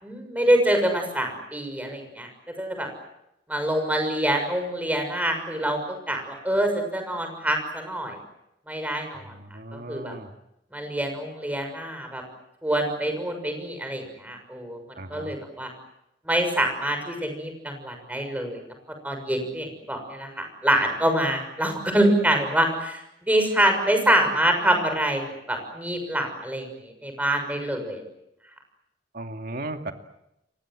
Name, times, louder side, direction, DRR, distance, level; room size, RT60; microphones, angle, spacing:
voice 1, 0.0-2.3 2.6-2.9 3.5-8.2 8.7-9.3 9.7-10.1 10.7-12.2 12.6-14.8 15.1-15.7 16.2-18.6 19.0-25.2 25.5-28.1, right 1 dB, 10° right, 5 dB, 6.5 m, -25 dB
voice 2, 9.3-10.3 15.0-15.3 29.1-29.9, right 2 dB, 55° right, 5 dB, 2.5 m, -36 dB
30.0 x 24.0 x 7.8 m, 0.84 s
head